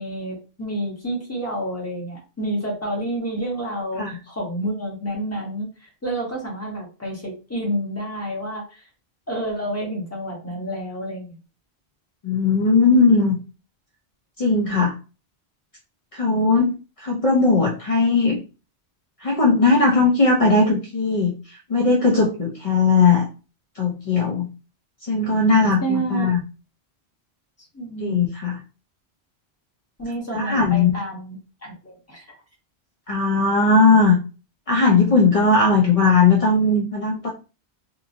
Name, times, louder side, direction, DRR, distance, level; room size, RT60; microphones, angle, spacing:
voice 1, 0.0-8.8 9.3-11.4 25.8-26.3 27.7-28.2 30.0-32.3, right 1 dB, 15° left, -2 dB, 1.0 m, -29 dB
voice 2, 12.2-13.4 14.4-14.9 16.1-18.4 19.2-23.3 23.8-24.5 25.0-26.4 28.0-28.6 30.3-30.9 33.1-34.2 34.7-37.3, left 3 dB, 50° left, 0 dB, 0.4 m, -18 dB
2.9 x 2.5 x 2.5 m, 0.33 s
omnidirectional pair, 1.1 m